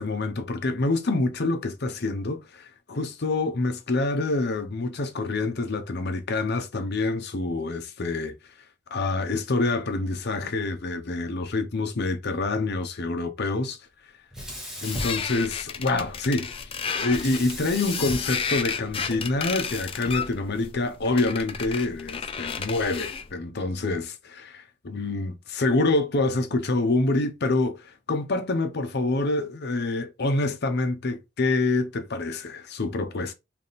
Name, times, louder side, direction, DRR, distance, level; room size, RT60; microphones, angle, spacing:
voice 1, 0.0-8.4 8.9-13.8 14.8-33.3, left 2 dB, 55° left, 0.7 m, -26 dB
Sink (filling or washing), 14.3-16.0 17.1-19.4, equal, ahead, 1.1 m, -37 dB
sound 1, 14.8-23.3, left 6 dB, 30° left, 0.4 m, -33 dB
3.5 x 2.5 x 4.0 m
head